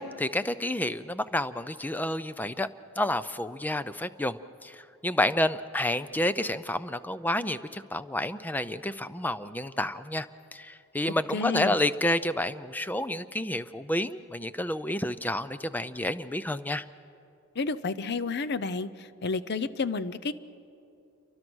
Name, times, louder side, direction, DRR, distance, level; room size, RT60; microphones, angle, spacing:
voice 1, 0.0-2.7 3.0-10.3 10.5-16.8, left 1 dB, 10° left, 13 dB, 0.5 m, -30 dB
voice 2, 11.3-11.8 17.6-20.3, left 4 dB, 50° left, 15 dB, 0.6 m, -30 dB
28.0 x 23.5 x 6.3 m, 2.7 s
head